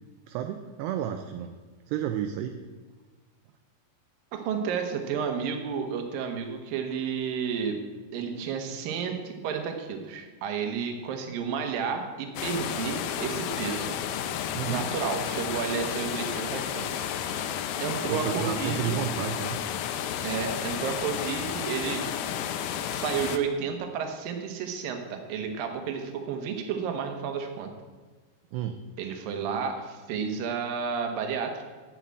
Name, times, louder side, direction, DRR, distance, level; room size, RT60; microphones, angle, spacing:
voice 1, 0.3-1.5 1.9-2.7 14.5-14.9 18.1-19.6 28.5-28.8, right 10 dB, 80° right, 6 dB, 2.4 m, -31 dB
voice 2, 4.3-7.8 8.1-14.0 14.6-17.0 17.8-19.0 20.2-22.0 22.9-27.7 29.0-31.7, right 6 dB, 65° right, 4 dB, 2.5 m, -31 dB
sound 1, 12.4-23.4, left 9 dB, 85° left, 2.5 m, -32 dB
9.0 x 7.6 x 8.7 m, 1.4 s
omnidirectional pair, 5.3 m